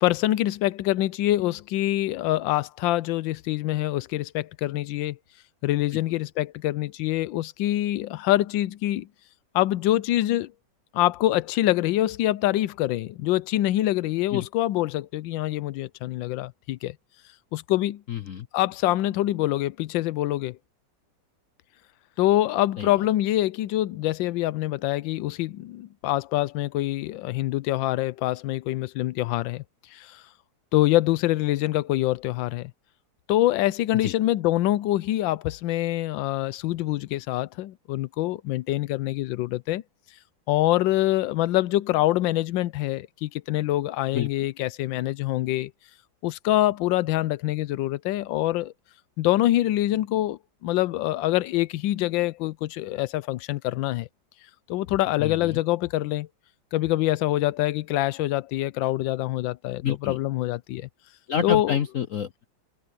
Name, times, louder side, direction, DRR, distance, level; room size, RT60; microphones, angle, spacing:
voice 1, 0.0-5.2 5.6-9.1 9.5-10.5 10.9-17.0 17.5-18.0 18.5-20.6 22.2-29.6 29.9-30.2 30.7-32.7 33.3-39.8 40.5-45.7 46.2-48.7 49.2-54.1 54.7-56.3 56.7-60.9 61.4-61.8, left 15 dB, 80° left, 1.3 m, -25 dB
voice 2, 18.1-18.5 22.8-23.0 34.0-34.1 44.1-44.3 55.2-55.6 59.8-60.2 61.3-62.4, left 8 dB, 60° left, 0.9 m, -28 dB
omnidirectional pair, 2.1 m